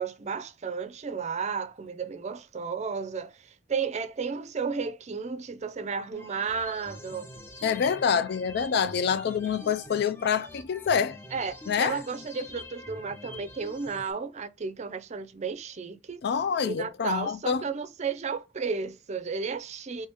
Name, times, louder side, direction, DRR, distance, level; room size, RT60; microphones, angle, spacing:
voice 1, 0.0-7.3 11.3-16.2 16.6-20.1, right 5 dB, 40° right, 0.5 m, -33 dB
sound 1, 6.1-14.1, left 1 dB, 15° left, 0.7 m, -45 dB
voice 2, 7.6-11.2 11.7-12.0 16.2-17.6, left 6 dB, 60° left, 0.4 m, -26 dB
3.2 x 2.9 x 3.4 m
head